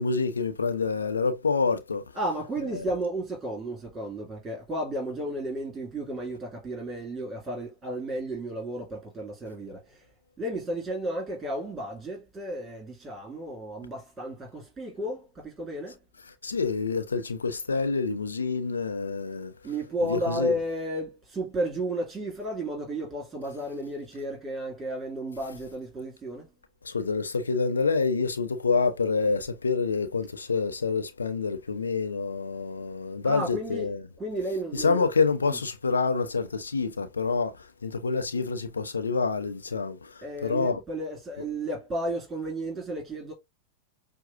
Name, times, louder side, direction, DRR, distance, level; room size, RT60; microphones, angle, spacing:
voice 1, 0.0-2.0 2.7-2.8 16.4-19.5 20.0-20.5 26.8-34.0 34.7-40.8, left 4 dB, 90° left, 0.8 m, -27 dB
voice 2, 2.1-10.0 10.4-16.0 19.6-26.5 33.2-33.9 34.2-35.0 35.5-35.6 40.2-43.3, right 1 dB, 15° right, 2.3 m, -33 dB
6.0 x 2.3 x 2.6 m
hypercardioid pair, 105°, 0 cm